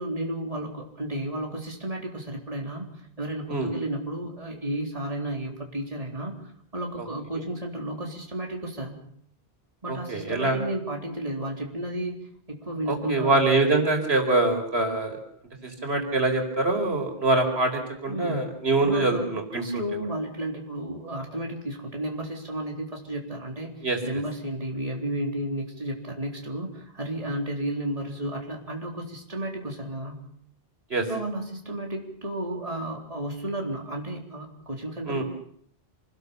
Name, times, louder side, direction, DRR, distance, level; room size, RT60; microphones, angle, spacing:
voice 1, 0.0-6.4 6.7-9.0 9.8-12.2 12.5-13.3 18.1-18.5 18.8-19.3 19.6-30.2 31.1-35.2, right 1 dB, 35° right, 1 dB, 4.1 m, -33 dB
voice 2, 9.9-10.6 12.9-15.2 15.6-19.8 23.8-24.0 30.9-31.1 35.1-35.2, right 2 dB, 75° right, 4 dB, 5.2 m, -24 dB
28.5 x 20.0 x 7.0 m, 0.63 s
omnidirectional pair, 1.1 m